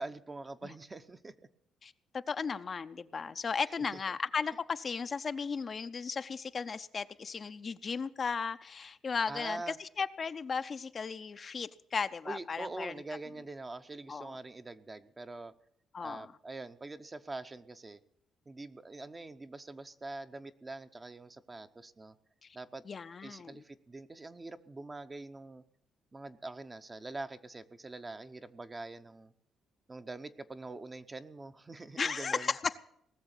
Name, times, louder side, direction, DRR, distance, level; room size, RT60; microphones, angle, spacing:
voice 1, 0.0-1.3 3.9-4.2 9.3-9.8 12.2-15.5 16.0-18.0 18.5-22.1 22.5-22.9 23.2-25.6 26.1-29.3 29.9-32.5, right 2 dB, 25° right, 10 dB, 0.8 m, -44 dB
voice 2, 1.8-13.0 14.1-14.3 15.9-16.3 22.4-22.6 22.9-23.6 32.0-32.6, left 5 dB, 40° left, 10 dB, 0.6 m, -36 dB
19.0 x 6.9 x 8.2 m, 0.72 s
cardioid pair, 90°, 0 cm